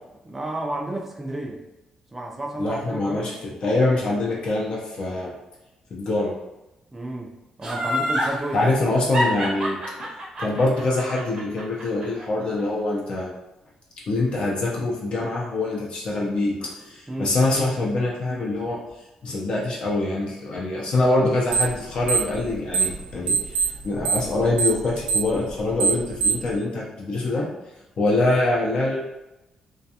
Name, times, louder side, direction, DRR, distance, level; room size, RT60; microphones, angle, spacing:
voice 1, 0.2-1.6 2.1-3.3 6.9-7.3 7.6-8.8 17.1-17.4, right 1 dB, 15° right, -1 dB, 0.4 m, -31 dB
voice 2, 2.6-5.3 5.9-6.3 8.5-9.8 10.4-13.3 14.1-18.8 19.2-27.5 28.0-29.0, left 2 dB, 50° left, -3 dB, 0.5 m, -24 dB
Laughter, 7.6-8.3 9.1-12.2 12.6-12.7, equal, 40° right, 0.7 m, -26 dB
sound 1, 21.5-21.8 22.0-23.0 23.3-26.5, right 5 dB, 90° right, 0.4 m, -22 dB
2.4 x 2.3 x 2.7 m, 0.97 s
cardioid pair, 145°, 2 cm